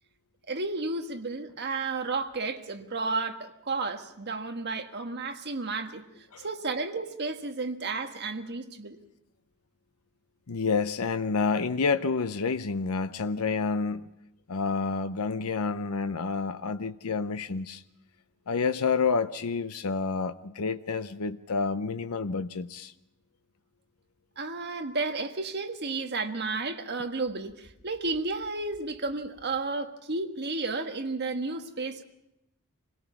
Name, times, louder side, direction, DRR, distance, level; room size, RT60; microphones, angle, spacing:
voice 1, 0.5-6.0 6.4-9.0 24.4-32.0, right 3 dB, 50° right, 1.5 m, -32 dB
voice 2, 10.5-14.1 14.5-17.8 18.5-22.9, left 4 dB, 80° left, 0.7 m, -29 dB
26.5 x 17.5 x 5.9 m
head